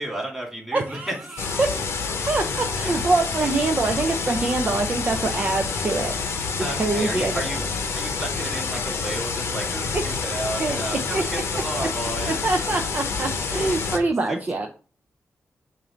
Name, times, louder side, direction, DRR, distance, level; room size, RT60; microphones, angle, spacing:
voice 1, 0.0-1.5 6.6-7.6 7.9-12.4 14.3-14.4, right 1 dB, 5° right, -2 dB, 2.3 m, -32 dB
voice 2, 0.7-1.7 2.3-6.2 6.8-7.3 9.9-10.2 10.6-11.2 11.8-11.9 12.2-14.7, right 3 dB, 35° right, 4 dB, 0.6 m, -25 dB
sound 1, 1.4-14.0, left 4 dB, 90° left, 0.9 m, -28 dB
7.4 x 2.6 x 5.1 m, 0.38 s
wide cardioid pair, 150°, 4 cm